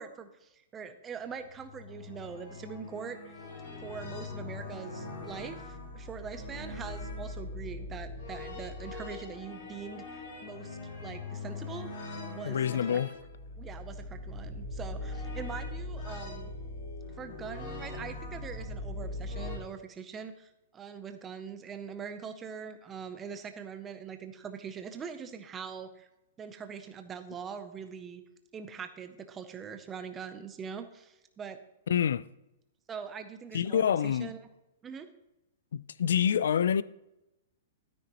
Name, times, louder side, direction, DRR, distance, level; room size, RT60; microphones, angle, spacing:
voice 1, 0.0-3.3 3.8-12.6 12.9-13.0 13.6-16.5 17.2-26.1 26.4-28.2 28.5-31.6 32.9-34.5 34.8-35.1, right 6 dB, 10° right, 0.6 m, -43 dB
sound 1, 1.3-19.6, left 2 dB, 50° left, 2.6 m, -41 dB
voice 2, 12.4-13.1 31.9-32.2 33.5-34.3 35.7-36.8, left 8 dB, 70° left, 0.4 m, -27 dB
12.5 x 9.8 x 3.0 m
hypercardioid pair, 175°, 0 cm